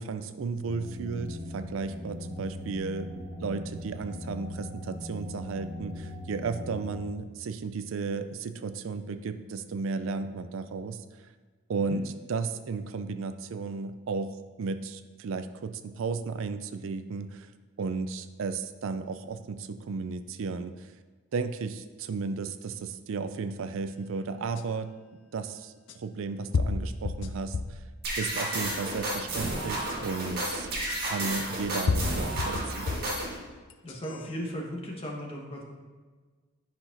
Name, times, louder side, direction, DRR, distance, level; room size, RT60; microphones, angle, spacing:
voice 1, 0.0-11.0 11.7-17.5 17.8-20.9 21.3-24.9 25.3-27.8 28.2-30.7 31.0-33.0, right 4 dB, 65° right, 10 dB, 0.4 m, -34 dB
sound 1, 0.7-7.0, left 1 dB, 5° left, 1.5 m, -40 dB
sound 2, 24.6-24.7 25.9-26.0 26.5-27.8 28.4-28.9 29.9-30.0 31.2-31.3 31.9-33.2 33.7-34.3, left 4 dB, 60° left, 0.4 m, -30 dB
sound 3, 28.0-33.4, right 1 dB, 45° right, 1.5 m, -32 dB
voice 2, 33.8-35.6, equal, 25° left, -1 dB, 1.1 m, -36 dB
10.5 x 5.7 x 2.6 m, 1.4 s
head